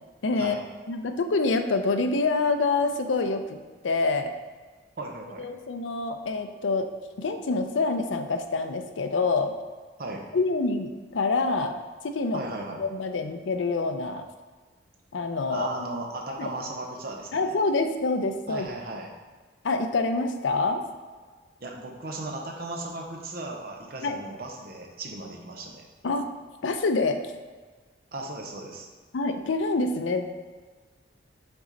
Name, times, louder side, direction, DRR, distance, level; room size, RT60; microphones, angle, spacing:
voice 1, 0.2-0.6 0.9-3.4 3.8-4.3 5.4-6.9 7.2-9.5 10.3-11.8 12.0-12.4 12.8-14.2 15.1-15.7 16.4-16.5 17.3-18.7 19.6-20.9 24.0-24.2 26.0-26.2 26.6-27.2 29.1-30.2, left 3 dB, 90° left, 7 dB, 0.5 m, -26 dB
voice 2, 5.0-5.5 10.0-10.3 12.3-12.8 15.5-17.5 18.5-19.1 21.6-25.9 28.1-28.9, right 2 dB, 50° right, 1 dB, 0.7 m, -36 dB
6.0 x 4.1 x 3.9 m, 1.4 s
head